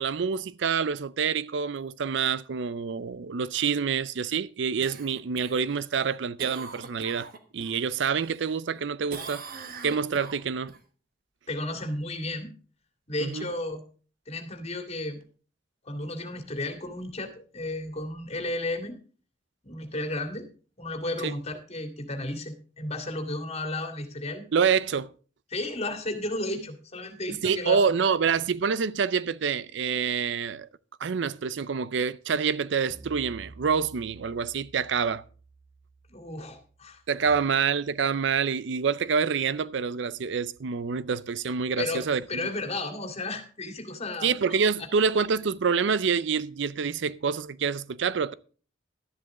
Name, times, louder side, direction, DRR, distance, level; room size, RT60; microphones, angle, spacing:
voice 1, 0.0-7.3 7.5-9.4 9.8-10.7 13.2-13.5 21.2-21.4 24.5-25.1 27.4-30.7 31.0-35.2 37.1-42.2 44.2-48.3, right 6 dB, 70° right, 0.5 m, -27 dB
Cough, 4.8-7.8 8.2-8.8 9.1-10.8 15.2-15.3, right 4 dB, 55° right, 1.4 m, -42 dB
voice 2, 11.5-12.5 13.1-13.8 14.3-15.2 15.9-19.0 19.6-20.5 20.8-24.5 25.5-27.8 36.1-37.4 41.8-44.3, left 2 dB, 35° left, 2.2 m, -33 dB
sound 1, 32.9-38.2, right 3 dB, 30° right, 1.8 m, -52 dB
12.5 x 10.5 x 3.7 m
head